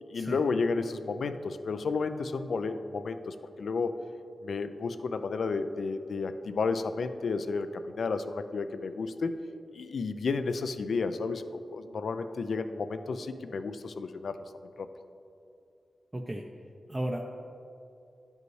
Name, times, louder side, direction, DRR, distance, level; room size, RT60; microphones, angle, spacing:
voice 1, 0.1-4.0 4.4-9.3 9.7-11.4 11.7-14.3 14.8-14.9, left 4 dB, 75° left, 10 dB, 0.3 m, -32 dB
voice 2, 16.1-16.4 16.9-17.3, right 1 dB, 20° right, 1 dB, 0.5 m, -34 dB
10.5 x 5.3 x 3.1 m, 2.7 s
cardioid pair, 75°, 0 cm